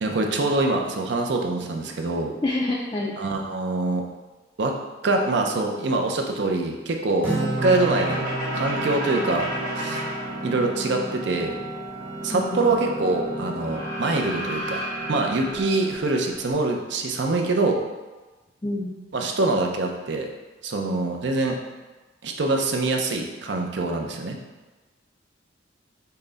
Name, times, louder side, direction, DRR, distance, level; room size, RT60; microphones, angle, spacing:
voice 1, 0.0-2.3 3.2-4.0 4.6-4.7 5.0-9.5 9.8-10.0 10.4-11.6 12.2-14.8 15.1-17.8 19.1-20.3 20.6-21.6 22.2-24.4, right 2 dB, 60° right, 2 dB, 0.5 m, -24 dB
voice 2, 2.4-3.2 12.3-12.7 18.6-18.9, left 2 dB, 20° left, -5 dB, 0.3 m, -27 dB
Acoustic guitar, 7.2-10.9, right 2 dB, 10° right, 0.8 m, -32 dB
sound 1, 7.5-16.5, right 1 dB, 40° right, 1.3 m, -32 dB
5.6 x 2.1 x 3.9 m, 1.2 s
head